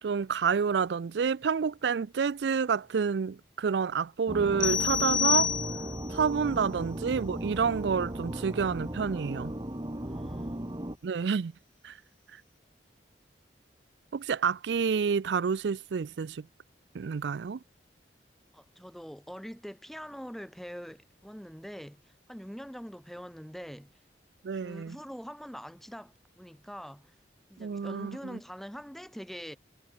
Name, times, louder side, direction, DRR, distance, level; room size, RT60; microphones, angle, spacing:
voice 1, 0.0-5.5 6.1-9.5 11.0-11.5 11.8-12.0 14.1-16.5 16.9-17.6 24.4-25.0 27.6-28.4, right 6 dB, 70° right, 0.4 m, -29 dB
sound 1, 4.3-11.0, right 1 dB, 25° right, 1.6 m, -36 dB
sound 2, 4.6-6.1, left 8 dB, 25° left, 0.6 m, -28 dB
voice 2, 6.6-7.0 10.0-10.7 18.5-23.9 24.5-27.1 27.5-29.6, equal, ahead, 3.9 m, -44 dB
head